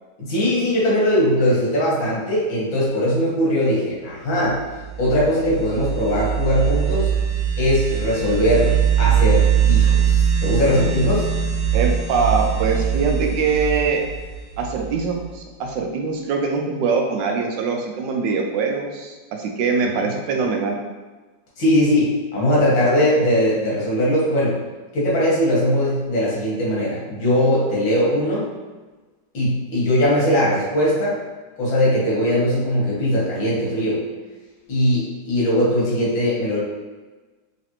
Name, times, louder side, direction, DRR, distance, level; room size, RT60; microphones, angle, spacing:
voice 1, 0.2-4.6 5.0-7.1 7.6-11.3 19.9-20.0 21.6-24.6 24.9-28.5 29.3-31.2 31.6-34.0 34.7-36.6, equal, 85° left, -6 dB, 2.1 m, -20 dB
sound 1, 4.7-15.2, right 8 dB, 45° right, 0.9 m, -21 dB
voice 2, 11.7-14.0 14.6-20.8, right 4 dB, 75° right, 2 dB, 1.2 m, -23 dB
4.0 x 3.1 x 2.9 m, 1.3 s
omnidirectional pair, 2.0 m